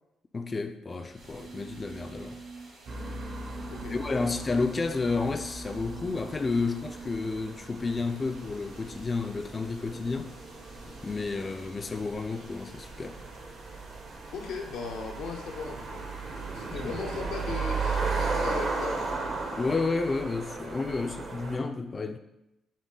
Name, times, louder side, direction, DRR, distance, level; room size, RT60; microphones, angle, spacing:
voice 1, 0.3-2.4 3.9-10.3 10.9-13.2 16.7-16.9 19.5-22.2, left 3 dB, 30° left, 0.3 m, -31 dB
sound 1, 0.9-7.4, right 4 dB, 35° right, 0.5 m, -45 dB
sound 2, 1.1-19.1, right 1 dB, 90° right, 1.5 m, -53 dB
sound 3, 2.9-21.5, right 3 dB, 60° right, 0.9 m, -36 dB
voice 2, 14.3-16.0 16.5-19.0, left 5 dB, 85° left, 0.6 m, -38 dB
6.0 x 2.1 x 3.8 m
cardioid pair, 90°, 0 cm